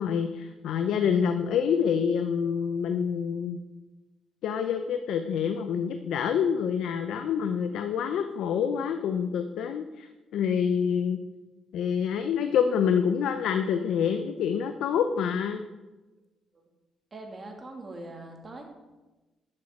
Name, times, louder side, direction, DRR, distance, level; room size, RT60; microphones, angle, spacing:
voice 1, 0.0-3.6 4.4-11.2 11.7-15.6, left 7 dB, 80° left, 8 dB, 0.6 m, -27 dB
voice 2, 17.1-18.6, right 2 dB, 30° right, 1 dB, 2.7 m, -42 dB
10.5 x 7.6 x 5.9 m, 1.1 s
cardioid pair, 90°, 0 cm